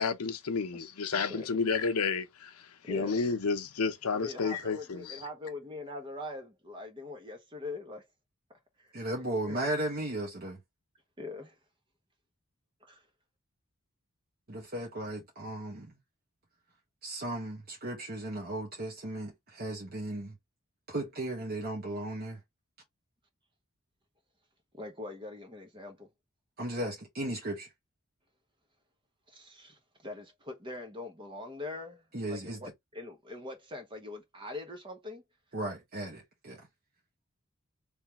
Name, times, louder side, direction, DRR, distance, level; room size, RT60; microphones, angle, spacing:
voice 1, 0.0-2.5 2.9-5.2, left 4 dB, 85° left, 0.7 m, -31 dB
voice 2, 2.8-3.2 4.1-8.1 8.5-8.9 9.5-9.6 11.2-11.6 12.8-13.0 24.7-26.1 29.3-35.2, left 2 dB, 20° right, 1.1 m, -43 dB
voice 3, 8.9-10.6 14.5-16.0 17.0-20.4 20.9-22.4 26.6-27.7 32.1-32.7 35.5-36.7, right 1 dB, 45° right, 1.2 m, -36 dB
3.4 x 3.1 x 2.9 m
head